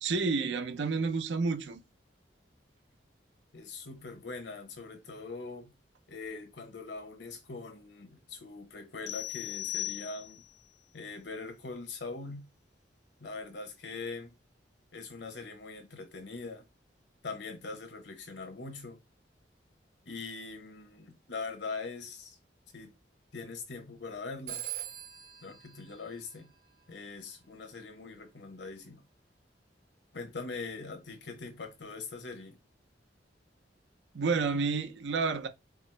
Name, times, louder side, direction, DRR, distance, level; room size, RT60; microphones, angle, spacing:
voice 1, 0.0-1.8 34.1-35.5, right 4 dB, 80° right, 0.5 m, -30 dB
voice 2, 3.5-5.7 6.1-10.4 10.9-12.5 13.2-14.3 14.9-16.6 17.2-19.0 20.1-22.4 22.7-22.9 23.3-24.6 25.4-26.5 26.9-29.0 30.1-32.6, left 4 dB, 75° left, 0.9 m, -42 dB
sound 1, 9.1-10.6, left 15 dB, 40° left, 0.3 m, -38 dB
Telephone, 24.5-27.0, right 12 dB, 55° right, 1.0 m, -43 dB
4.5 x 2.0 x 3.2 m
head